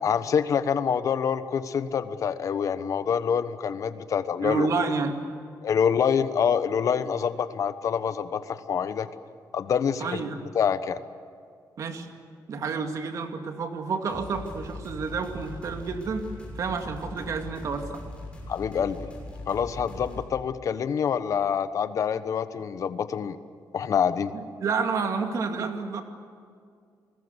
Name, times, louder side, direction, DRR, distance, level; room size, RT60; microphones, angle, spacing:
voice 1, 0.0-4.9 5.6-9.1 9.5-10.2 10.5-11.0 18.5-19.1 19.5-23.4 23.7-24.3, left 7 dB, 50° left, 12 dB, 1.2 m, -26 dB
voice 2, 4.4-5.2 10.0-10.4 11.8-12.1 12.5-16.3 16.5-18.0 24.3-26.0, right 5 dB, 50° right, 5 dB, 2.4 m, -29 dB
sound 1, 14.1-20.3, left 2 dB, 15° left, 6.9 m, -40 dB
29.0 x 20.5 x 8.1 m, 2.2 s
wide cardioid pair, 165°, 7 cm